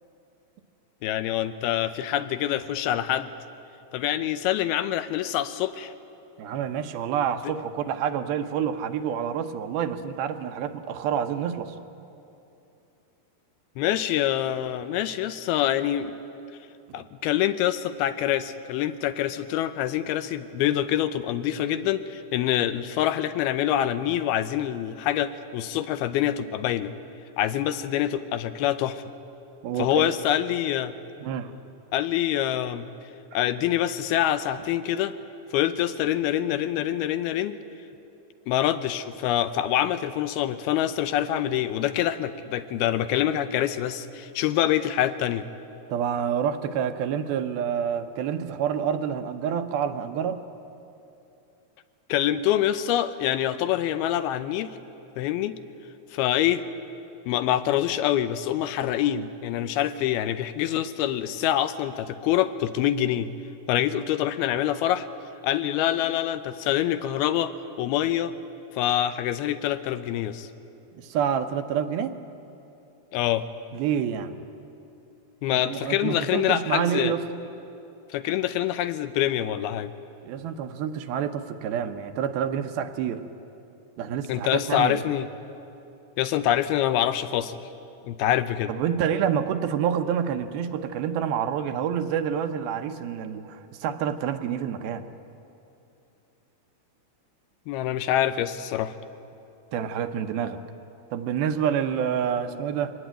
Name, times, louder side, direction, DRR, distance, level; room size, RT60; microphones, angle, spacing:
voice 1, 1.0-3.3 3.9-5.9 13.8-16.2 16.9-26.9 27.4-29.0 29.8-30.9 31.9-32.9 33.3-35.1 35.5-37.6 38.5-45.5 52.1-54.8 55.2-55.6 56.1-56.6 57.3-63.3 63.7-65.1 65.4-67.5 67.8-68.3 68.8-70.5 73.1-73.4 75.4-77.1 78.1-79.9 84.3-85.3 86.2-87.6 88.1-88.7 97.7-98.9, left 12 dB, 80° left, 11 dB, 2.5 m, -25 dB
voice 2, 6.4-11.8 29.6-30.1 31.2-31.5 45.9-50.4 71.0-72.1 73.7-74.4 75.6-77.2 80.2-83.2 84.0-85.0 88.7-95.1 99.7-100.6 101.1-102.9, right 8 dB, 75° right, 8 dB, 2.6 m, -28 dB
23.5 x 19.0 x 9.0 m, 2.8 s
omnidirectional pair, 4.6 m